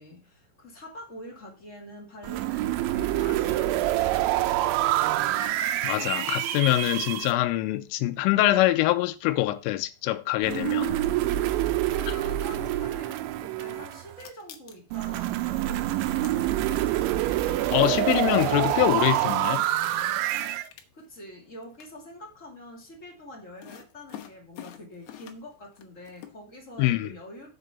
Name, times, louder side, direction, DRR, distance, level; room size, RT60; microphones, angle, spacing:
voice 1, 0.0-4.8 11.5-16.8 20.9-27.5, left 1 dB, 30° left, 1.5 m, -45 dB
sound 1, 2.2-7.3 10.4-14.2 14.9-20.7, right 14 dB, 80° right, 2.9 m, -26 dB
voice 2, 5.8-11.0 17.7-19.7 26.8-27.1, left 16 dB, 90° left, 3.4 m, -24 dB
sound 2, 14.0-15.2 15.9-17.1 17.4-17.5 18.8-18.9 19.2-19.3 19.6-21.3 21.6-21.9 23.6-25.5 25.8-26.3, left 10 dB, 75° left, 2.6 m, -46 dB
7.6 x 4.8 x 6.8 m
omnidirectional pair, 5.6 m